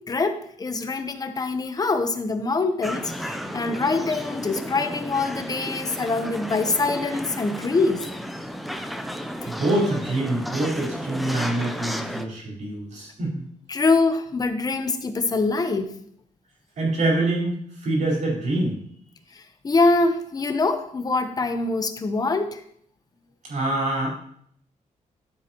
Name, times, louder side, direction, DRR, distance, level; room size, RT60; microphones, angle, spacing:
voice 1, 0.0-8.1 13.7-15.9 19.6-22.6, left 3 dB, 30° left, 7 dB, 0.9 m, -24 dB
sound 1, 2.8-12.3, equal, ahead, 0.6 m, -33 dB
voice 2, 9.5-13.4 16.8-18.8 23.4-24.1, right 2 dB, 65° right, -3 dB, 4.7 m, -25 dB
12.5 x 7.7 x 3.1 m, 0.65 s
wide cardioid pair, 135°, 13 cm